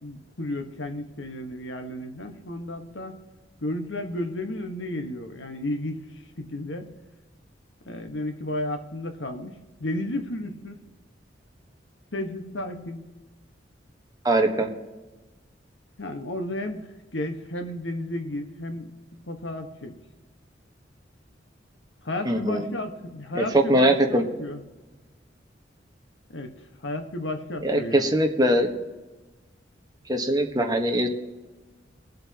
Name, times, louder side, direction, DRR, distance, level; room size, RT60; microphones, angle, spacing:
voice 1, 0.0-3.2 3.6-6.0 6.4-6.9 7.8-10.8 12.1-13.1 16.0-18.9 19.3-19.9 22.0-24.6 26.3-28.2, left 1 dB, 85° left, 6 dB, 1.5 m, -33 dB
voice 2, 14.2-14.7 22.2-22.7 23.3-24.2 27.6-28.7 30.1-31.1, right 1 dB, 20° right, 3 dB, 1.3 m, -21 dB
22.0 x 7.9 x 3.0 m, 1.2 s
head